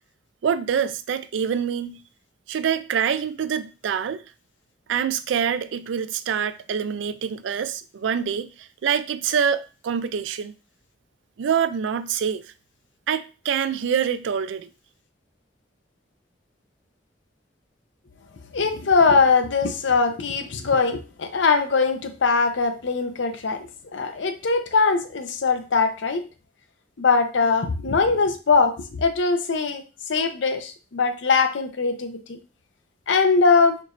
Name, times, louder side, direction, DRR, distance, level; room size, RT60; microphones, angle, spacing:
voice 1, 0.4-2.0 2.5-4.2 4.9-8.5 8.8-10.5 11.4-12.4 13.1-14.7, right 7 dB, 80° right, 0.3 m, -25 dB
voice 2, 18.5-23.7 23.9-26.2 27.0-29.8 30.1-32.4 33.1-33.8, left 4 dB, 80° left, 0.6 m, -21 dB
4.4 x 3.0 x 2.5 m
head